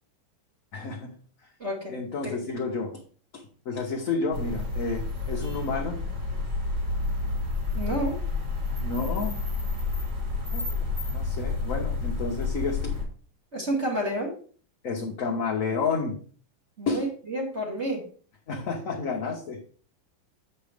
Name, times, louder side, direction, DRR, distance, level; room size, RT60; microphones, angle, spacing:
voice 1, 0.7-1.1 1.9-3.0 3.3-6.0 8.8-9.4 10.5-10.9 11.1-13.0 14.8-16.2 16.9-17.1 18.5-19.6, left 4 dB, 50° left, 0 dB, 1.1 m, -30 dB
voice 2, 1.6-2.0 2.2-2.4 7.7-8.2 13.5-14.3 16.8-18.0, right 1 dB, 35° right, -2 dB, 2.0 m, -30 dB
sound 1, 4.3-13.0, left 3 dB, 60° right, 3.7 m, -30 dB
7.5 x 5.7 x 3.4 m, 0.43 s
omnidirectional pair, 2.1 m